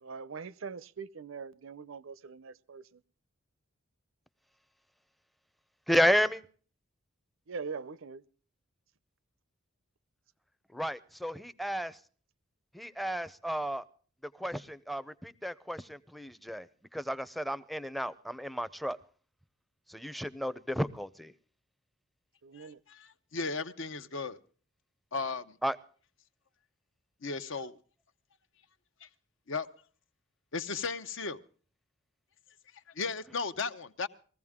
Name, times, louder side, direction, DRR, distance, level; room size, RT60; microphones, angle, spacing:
voice 1, 0.0-3.0 7.5-8.2 22.4-22.8, right 5 dB, 70° right, 0.6 m, -42 dB
voice 2, 5.9-6.4 10.7-12.0 12.7-13.8 14.4-16.7 16.9-19.0 19.9-21.3 25.6-25.8, equal, ahead, 0.6 m, -32 dB
voice 3, 22.5-24.4 25.1-25.6 27.2-27.8 29.0-29.1 29.5-29.7 30.5-31.4 32.9-34.1, left 4 dB, 65° left, 0.9 m, -36 dB
21.5 x 15.0 x 3.6 m
head